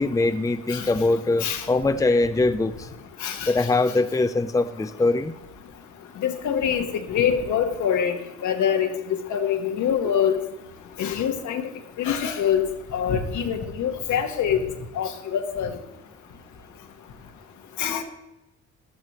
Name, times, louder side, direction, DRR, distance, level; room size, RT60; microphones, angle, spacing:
voice 1, 0.0-2.7 3.5-5.3, left 2 dB, 10° left, 9 dB, 0.6 m, -22 dB
voice 2, 3.2-3.5 6.2-8.9 9.3-10.4 11.0-11.7 12.0-12.7 12.9-14.6 14.9-15.7 17.8-18.0, left 8 dB, 75° left, 5 dB, 1.5 m, -24 dB
14.0 x 12.5 x 3.1 m, 1.0 s
cardioid pair, 90°, 30 cm